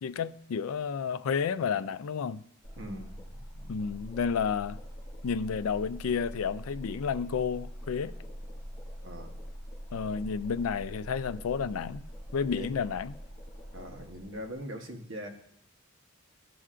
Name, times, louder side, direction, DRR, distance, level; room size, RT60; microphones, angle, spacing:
voice 1, 0.0-2.4 3.7-4.8 5.2-8.1 9.9-12.0 12.3-13.2, left 6 dB, 85° left, 0.4 m, -31 dB
sound 1, 2.6-14.6, equal, 30° left, 2.7 m, -44 dB
voice 2, 2.8-3.7 9.0-9.3 12.6-12.8 13.7-15.3, equal, 65° right, 1.2 m, -42 dB
14.5 x 5.5 x 2.5 m
head